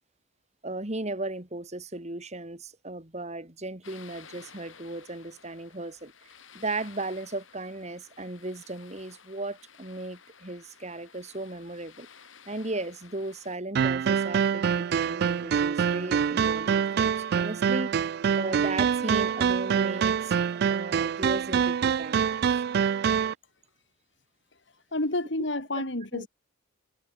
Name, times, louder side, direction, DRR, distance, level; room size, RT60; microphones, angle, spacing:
voice 1, 0.6-12.1 12.5-20.4 20.7-22.6 25.8-25.9 26.1-26.3, right 2 dB, 35° right, 2.7 m, -36 dB
sound 1, 3.8-13.6, left 6 dB, 80° left, 6.9 m, -53 dB
sound 2, 13.8-23.3, right 7 dB, 55° right, 0.3 m, -25 dB
voice 2, 24.9-26.3, left 2 dB, 65° left, 2.7 m, -29 dB
head